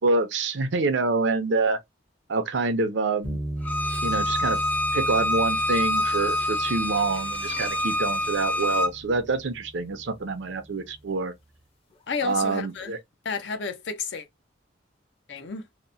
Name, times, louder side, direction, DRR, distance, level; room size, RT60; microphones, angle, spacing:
voice 1, 0.0-1.8 2.3-3.4 4.0-4.6 4.9-11.3 12.2-13.0, right 3 dB, 75° right, 0.6 m, -26 dB
sound 1, 3.2-11.4, right 1 dB, 30° left, 0.7 m, -38 dB
Bowed string instrument, 3.6-8.9, left 1 dB, 10° left, 0.3 m, -26 dB
voice 2, 12.1-12.9 13.2-14.3 15.3-15.7, left 5 dB, 65° left, 0.6 m, -31 dB
2.8 x 2.1 x 2.6 m
head